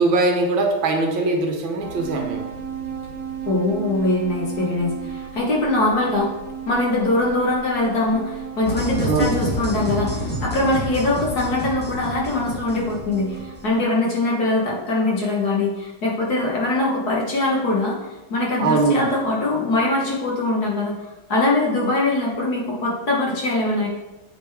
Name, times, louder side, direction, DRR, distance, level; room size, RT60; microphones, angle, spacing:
voice 1, 0.0-2.4 9.0-9.4 18.6-19.1, right 3 dB, 70° right, 3 dB, 1.6 m, -21 dB
sound 1, 1.8-13.7, right 7 dB, 55° right, 1.7 m, -35 dB
voice 2, 3.5-6.3 6.7-18.0 18.3-21.0 21.3-23.9, left 2 dB, 50° left, -3 dB, 1.6 m, -22 dB
sound 2, 8.6-13.5, left 1 dB, 5° left, 1.0 m, -29 dB
7.8 x 5.1 x 3.4 m, 1.1 s
omnidirectional pair, 2.3 m